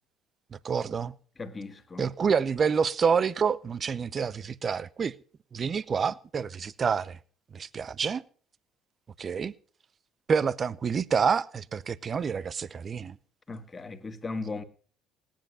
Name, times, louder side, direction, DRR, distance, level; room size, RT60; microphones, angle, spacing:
voice 1, 0.6-1.1 2.0-5.1 5.5-7.2 7.5-8.2 9.2-9.5 10.3-13.2, right 6 dB, 40° right, 0.8 m, -27 dB
voice 2, 1.4-2.1 13.5-14.6, left 3 dB, 25° left, 2.2 m, -37 dB
18.0 x 10.5 x 5.7 m
hypercardioid pair, 60°, 0 cm